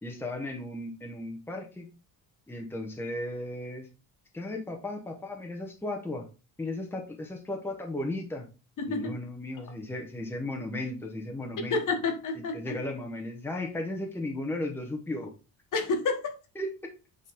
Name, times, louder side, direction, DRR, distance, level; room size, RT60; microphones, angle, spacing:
voice 1, 0.0-1.9 2.5-3.9 4.3-6.2 6.6-8.5 8.9-11.8 12.3-15.3 16.5-16.7, left 1 dB, 5° left, 2 dB, 1.1 m, -35 dB
voice 2, 8.8-9.1 11.7-12.8 15.7-16.4, left 4 dB, 50° left, 4 dB, 1.5 m, -29 dB
8.3 x 4.0 x 3.5 m, 0.32 s
cardioid pair, 155°, 38 cm